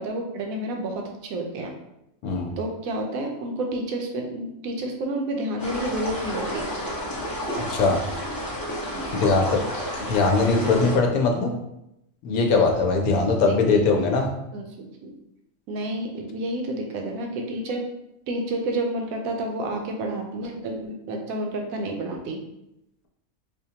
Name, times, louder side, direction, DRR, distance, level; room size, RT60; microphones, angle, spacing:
voice 1, 0.0-1.7 2.6-6.7 8.9-9.1 13.3-13.4 14.5-15.1 15.7-17.8 18.3-22.4, right 1 dB, 75° right, 2 dB, 1.1 m, -30 dB
voice 2, 2.2-2.5 7.6-8.0 9.1-9.6 10.0-11.5 12.2-14.3, left 3 dB, 85° left, 2 dB, 1.1 m, -21 dB
sound 1, 5.6-11.0, equal, 25° left, 0.5 m, -31 dB
4.8 x 2.2 x 2.8 m, 0.84 s
omnidirectional pair, 1.5 m